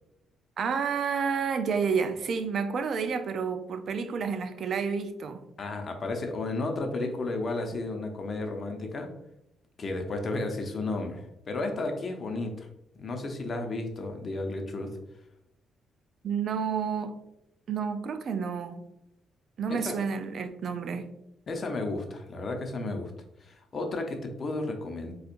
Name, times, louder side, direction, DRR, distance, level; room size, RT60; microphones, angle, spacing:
voice 1, 0.6-5.4 16.2-17.1 17.7-18.8 19.6-21.1, right 6 dB, 60° right, 9 dB, 0.4 m, -30 dB
voice 2, 5.6-9.1 9.8-12.7 12.9-15.0 19.7-19.9 21.5-23.1 23.4-25.1, left 2 dB, 45° left, 3 dB, 0.7 m, -33 dB
4.4 x 2.4 x 2.5 m, 0.83 s
cardioid pair, 90°, 0 cm